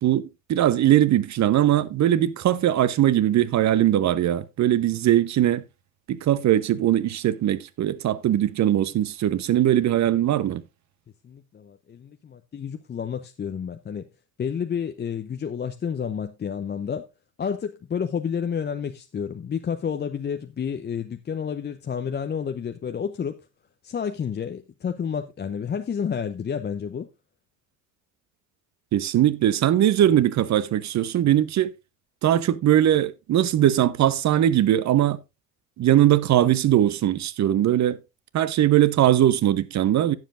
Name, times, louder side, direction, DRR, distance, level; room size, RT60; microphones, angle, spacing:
voice 1, 0.0-5.6 6.1-10.6 28.9-31.7 32.2-35.2 35.8-38.0 38.3-40.1, right 12 dB, 35° right, 0.9 m, -20 dB
voice 2, 11.2-14.1 14.4-17.0 17.4-23.4 23.8-27.1, left 7 dB, 20° left, 0.7 m, -30 dB
16.5 x 7.3 x 2.5 m
figure-of-eight pair, 60°, 49 cm